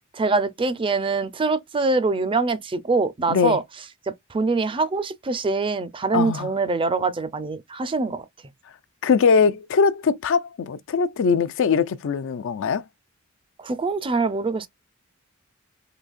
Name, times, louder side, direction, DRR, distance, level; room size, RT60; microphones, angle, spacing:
voice 1, 0.1-3.6 4.3-8.2 13.6-14.7, right 3 dB, 25° right, 0.4 m, -24 dB
voice 2, 3.3-3.6 6.1-6.5 9.0-12.8, left 5 dB, 65° left, 0.4 m, -21 dB
3.9 x 2.7 x 2.4 m
head